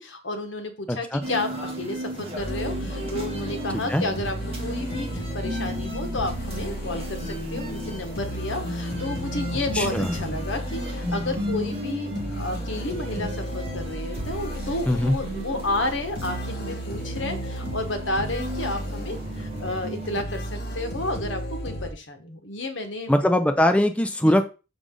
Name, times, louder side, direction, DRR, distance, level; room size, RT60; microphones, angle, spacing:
voice 1, 0.0-4.4 4.6-23.1 24.2-24.4, left 2 dB, 75° left, 5 dB, 1.5 m, -31 dB
voice 2, 0.9-1.2 3.9-4.0 9.7-10.1 14.9-15.1 23.1-24.4, left 1 dB, 5° left, 6 dB, 0.5 m, -21 dB
sound 1, 1.2-20.2, equal, 30° right, 1.9 m, -35 dB
sound 2, 2.4-21.9, equal, 55° left, 1.7 m, -34 dB
6.4 x 5.2 x 3.8 m, 0.31 s
head